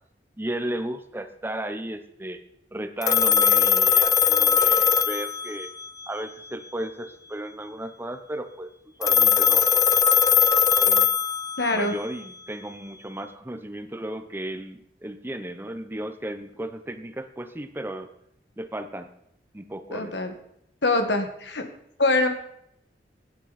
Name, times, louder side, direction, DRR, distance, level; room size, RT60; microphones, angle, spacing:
voice 1, 0.4-2.4 2.7-5.7 6.1-8.7 9.0-9.8 10.8-11.1 11.7-18.1 18.6-19.1 19.5-20.1, right 1 dB, 15° right, 9 dB, 0.7 m, -34 dB
Telephone, 3.0-5.9 9.0-11.8, left 7 dB, 20° left, 0.4 m, -20 dB
voice 2, 11.6-11.9 19.9-20.3 20.8-21.6 22.0-22.3, left 2 dB, 80° left, 6 dB, 1.7 m, -23 dB
16.5 x 8.9 x 4.2 m, 0.74 s
head